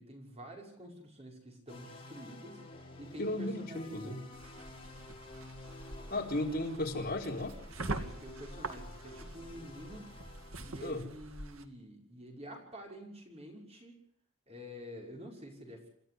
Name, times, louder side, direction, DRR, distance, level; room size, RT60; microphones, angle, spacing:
voice 1, 0.0-2.6 3.0-4.3 7.9-10.1 10.6-14.0 14.5-15.9, equal, 30° right, 1 dB, 6.0 m, -48 dB
sound 1, 1.7-11.0, left 2 dB, 25° left, 4.6 m, -51 dB
voice 2, 3.2-4.2 6.1-7.5 10.8-11.0, left 1 dB, 45° left, 1 dB, 4.4 m, -35 dB
sound 2, 4.3-11.7, right 2 dB, 85° right, 2.3 m, -44 dB
28.5 x 14.0 x 8.0 m, 0.66 s
head